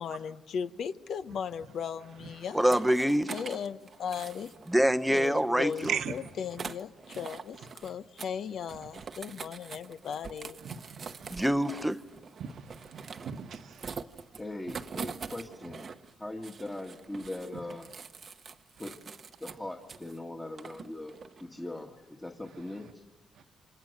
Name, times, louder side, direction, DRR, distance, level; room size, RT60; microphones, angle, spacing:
voice 1, 0.0-2.6 3.3-4.5 5.1-10.6, left 7 dB, 65° left, 0.9 m, -37 dB
sound 1, 2.4-4.8 5.1-7.9 8.2-8.3 8.6-16.1 16.4-20.2 20.6-21.5, right 5 dB, 45° right, 1.0 m, -44 dB
voice 2, 2.5-3.3 4.7-6.0 11.3-12.0, equal, 5° right, 0.8 m, -25 dB
voice 3, 10.6-11.5 12.4-13.8, right 8 dB, 70° right, 1.3 m, -37 dB
voice 4, 14.4-15.9 16.2-17.9 18.8-23.0, left 1 dB, 15° left, 1.6 m, -40 dB
28.5 x 26.0 x 6.6 m
cardioid pair, 90°, 0 cm